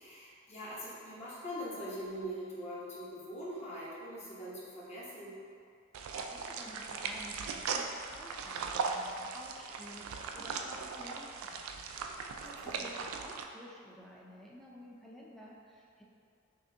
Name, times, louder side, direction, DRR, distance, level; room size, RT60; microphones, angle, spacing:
voice 1, 0.0-5.4 12.4-12.8, equal, 30° left, -8 dB, 0.9 m, -42 dB
sound 1, 5.9-13.4, right 5 dB, 80° right, 0.3 m, -39 dB
voice 2, 6.2-10.0 10.3-11.8 12.4-16.0, equal, ahead, -4 dB, 0.4 m, -52 dB
5.9 x 2.6 x 2.6 m, 2.3 s
head